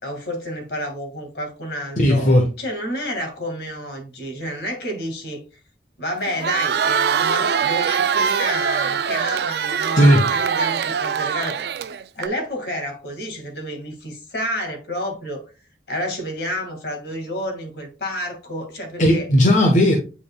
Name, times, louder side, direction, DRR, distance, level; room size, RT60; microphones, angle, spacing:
voice 1, 0.0-2.3 2.6-5.4 6.0-15.4 15.9-19.3, equal, 65° left, 2.0 m, -30 dB
voice 2, 2.0-2.5 10.0-10.3 19.0-20.0, equal, 45° left, 1.1 m, -15 dB
Crowd, 6.3-12.3, right 7 dB, 65° right, 0.4 m, -22 dB
8.9 x 4.7 x 2.3 m
head